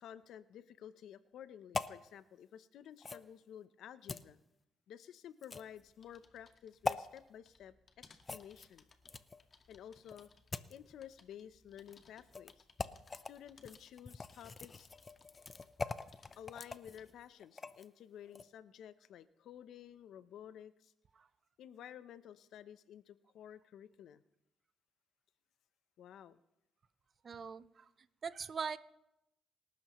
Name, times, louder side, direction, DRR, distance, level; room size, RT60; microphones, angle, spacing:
voice 1, 0.0-4.4 4.9-8.8 9.7-10.3 10.7-12.6 13.1-14.9 16.4-20.9 21.6-24.2 26.0-26.4, left 9 dB, 75° left, 14 dB, 0.7 m, -53 dB
sound 1, 1.7-2.0 3.0-3.3 4.1-4.3 5.4-5.8 6.8-7.0 8.2-9.4 10.1-10.8 11.8-12.0 12.3-12.5 12.8-13.3 13.6-17.9 18.3-18.5, left 4 dB, 30° left, 0.7 m, -42 dB
sound 2, 5.7-17.3, left 4 dB, 45° left, 1.7 m, -66 dB
voice 2, 27.2-27.9 28.2-28.8, right 6 dB, 45° right, 14 dB, 0.8 m, -41 dB
27.5 x 12.5 x 3.1 m, 0.86 s
cardioid pair, 90°, 0 cm